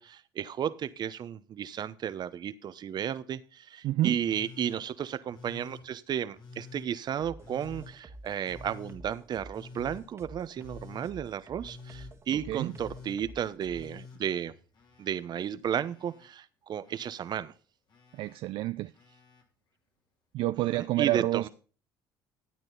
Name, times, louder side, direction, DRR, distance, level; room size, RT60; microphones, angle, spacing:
voice 1, 0.0-14.5 15.0-17.5 20.7-21.5, right 9 dB, 50° right, 14 dB, 0.9 m, -33 dB
voice 2, 3.8-4.2 12.3-12.7 18.2-18.9 20.3-21.5, right 16 dB, 65° right, 11 dB, 0.4 m, -29 dB
Telephone, 4.2-4.8 5.3-5.8 6.3-6.9 7.4-7.9 8.4-9.0 9.5-10.0 10.5-11.1 11.6-12.1 12.6-13.2 13.7-15.2 15.5-16.3 16.8-17.3 17.9-18.4 18.9-19.4 20.6-20.7, left 4 dB, 50° left, 3.1 m, -49 dB
sound 1, 7.2-14.0, right 1 dB, 30° right, 1.6 m, -49 dB
12.5 x 8.9 x 4.0 m, 0.37 s
supercardioid pair, 80°, 9 cm